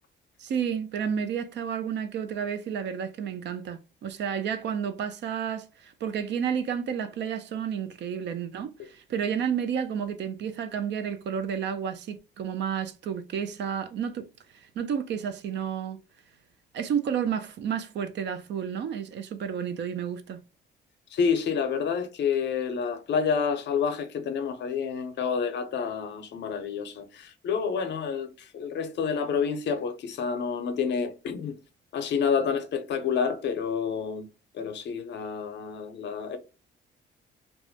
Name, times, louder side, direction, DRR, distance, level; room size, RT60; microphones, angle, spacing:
voice 1, 0.4-14.3 14.5-16.0 16.7-20.4, right 8 dB, 65° right, 0.4 m, -31 dB
voice 2, 21.1-31.6 31.9-34.3 34.5-36.4, left 6 dB, 65° left, 0.6 m, -29 dB
2.3 x 2.1 x 2.7 m
cardioid pair, 90°, 20 cm